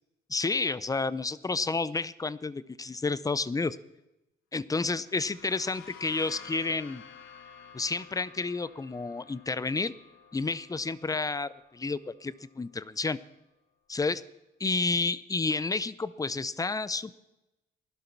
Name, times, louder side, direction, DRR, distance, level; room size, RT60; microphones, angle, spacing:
voice 1, 0.3-3.8 4.5-7.0 7.7-9.9 10.3-13.2 13.9-14.2 14.6-17.1, left 3 dB, 15° left, 18 dB, 0.6 m, -30 dB
sound 1, 4.9-12.5, left 7 dB, 90° left, 1.6 m, -51 dB
16.5 x 11.5 x 6.0 m, 0.96 s
cardioid pair, 90°, 20 cm